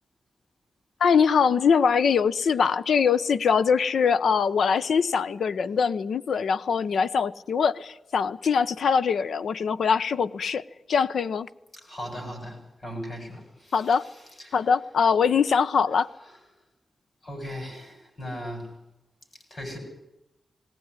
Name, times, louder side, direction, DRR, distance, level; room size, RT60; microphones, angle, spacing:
voice 1, 1.0-10.6 10.9-11.5 13.7-14.0 14.5-16.1, left 6 dB, 80° left, 0.7 m, -22 dB
voice 2, 11.7-14.6 17.2-18.7 19.5-19.8, equal, 35° left, 7.4 m, -38 dB
19.5 x 19.0 x 9.8 m
wide cardioid pair, 170°, 0 cm